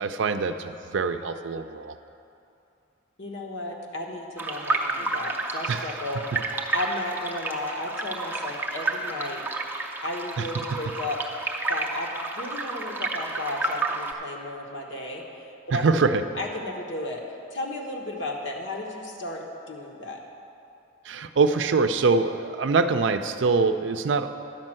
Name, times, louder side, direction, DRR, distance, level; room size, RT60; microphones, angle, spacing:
voice 1, 0.0-2.0 5.7-5.9 10.4-10.5 15.7-16.2 21.0-24.3, right 4 dB, 70° right, 9 dB, 0.5 m, -24 dB
voice 2, 3.2-6.3 6.7-9.4 10.0-11.2 11.7-16.0 16.3-17.2 17.5-20.2, left 1 dB, 75° left, 0 dB, 1.3 m, -34 dB
sound 1, 4.4-14.1, right 2 dB, 10° right, 0.5 m, -31 dB
10.5 x 5.4 x 7.5 m, 2.7 s
head